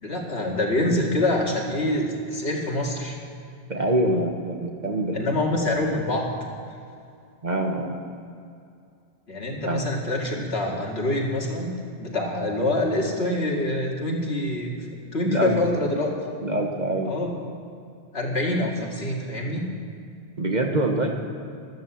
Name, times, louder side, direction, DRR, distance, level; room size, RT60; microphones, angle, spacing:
voice 1, 0.0-3.2 5.1-6.3 9.3-11.7 12.0-14.7 15.1-16.1 17.0-17.3 18.1-19.7, left 1 dB, 65° left, -1 dB, 2.4 m, -25 dB
voice 2, 3.7-5.2 7.4-8.0 9.6-9.9 15.2-15.5 16.4-17.1 20.4-21.2, right 1 dB, 40° right, 2 dB, 1.3 m, -25 dB
13.0 x 11.5 x 7.3 m, 2.5 s
omnidirectional pair, 1.2 m